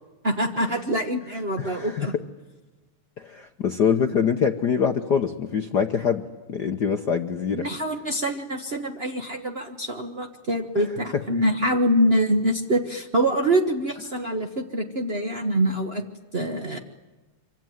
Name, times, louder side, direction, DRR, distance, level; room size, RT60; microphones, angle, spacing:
voice 1, 0.2-2.1 7.6-16.0 16.3-16.8, right 1 dB, 70° right, 4 dB, 0.5 m, -25 dB
voice 2, 1.6-2.1 3.2-7.6, left 7 dB, 65° left, 5 dB, 1.0 m, -24 dB
26.0 x 25.0 x 9.2 m, 1.2 s
omnidirectional pair, 3.3 m